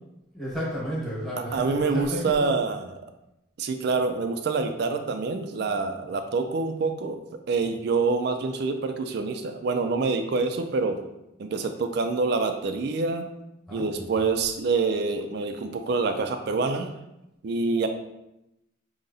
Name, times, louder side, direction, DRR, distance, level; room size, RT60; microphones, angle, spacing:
voice 1, 0.3-2.5 13.7-14.2, equal, ahead, -8 dB, 1.1 m, -32 dB
voice 2, 1.5-2.8 3.6-7.2 7.5-11.0 11.4-13.3 13.7-16.9 17.4-17.9, right 4 dB, 55° right, 7 dB, 0.3 m, -26 dB
5.3 x 2.8 x 2.6 m, 0.89 s
head